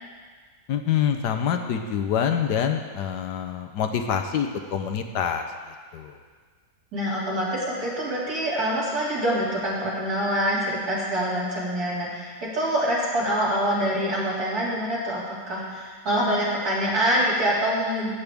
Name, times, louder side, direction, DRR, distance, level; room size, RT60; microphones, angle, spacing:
voice 1, 0.7-5.4 5.9-6.2, left 8 dB, 75° left, 5 dB, 1.4 m, -26 dB
voice 2, 6.9-18.1, equal, 60° right, -7 dB, 3.3 m, -25 dB
15.0 x 8.6 x 3.5 m, 1.6 s
omnidirectional pair, 1.8 m